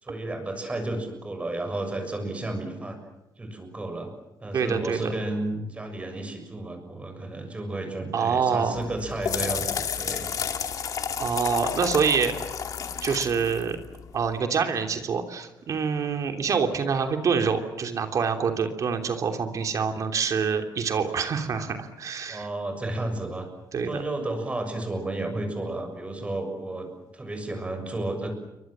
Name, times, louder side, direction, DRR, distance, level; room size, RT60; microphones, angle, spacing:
voice 1, 0.0-3.0 3.4-4.1 4.4-10.4 22.3-23.5 23.8-28.3, right 2 dB, 15° right, 6 dB, 6.8 m, -32 dB
voice 2, 4.5-5.1 8.1-8.8 11.2-12.4 13.0-13.8 14.1-22.5 23.7-24.0, right 6 dB, 45° right, 5 dB, 3.1 m, -26 dB
sound 1, 8.8-14.3, left 7 dB, 50° left, 2.5 m, -31 dB
29.5 x 24.0 x 7.5 m, 0.91 s
cardioid pair, 155°, 7 cm